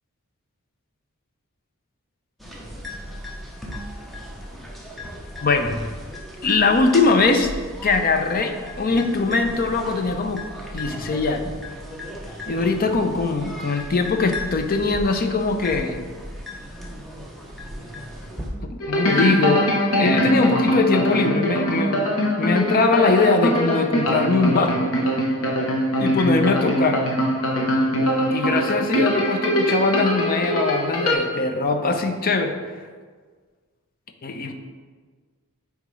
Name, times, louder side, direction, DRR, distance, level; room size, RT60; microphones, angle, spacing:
sound 1, 2.4-18.5, left 1 dB, ahead, 0.6 m, -36 dB
voice 1, 5.4-5.8 6.4-7.5 7.8-10.4 10.7-11.5 12.5-16.0 18.6-19.7 20.0-22.1 22.4-24.9 26.0-27.0 28.3-32.6 34.2-34.5, left 3 dB, 40° left, 6 dB, 0.5 m, -21 dB
sound 2, 18.8-31.1, equal, 65° left, 0.9 m, -22 dB
8.9 x 3.6 x 3.1 m, 1.5 s
head